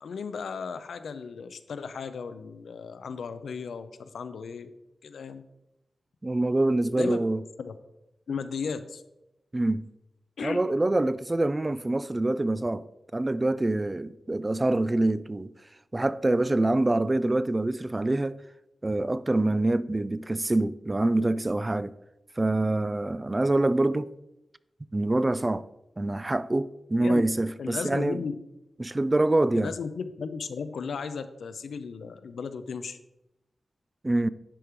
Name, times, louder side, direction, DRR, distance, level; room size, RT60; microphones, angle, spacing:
voice 1, 0.0-4.7 5.0-5.4 6.9-7.2 7.6-7.8 8.3-9.0 10.4-10.6 27.0-27.2 27.6-28.4 29.5-33.0, left 5 dB, 85° left, 0.4 m, -35 dB
voice 2, 6.2-7.4 9.5-9.8 10.4-12.8 13.1-15.5 15.9-18.4 18.8-21.9 22.4-24.1 24.9-25.7 26.0-28.2 28.8-29.7 34.0-34.3, right 2 dB, 30° right, 0.3 m, -25 dB
10.0 x 3.6 x 4.5 m
cardioid pair, 50°, 0 cm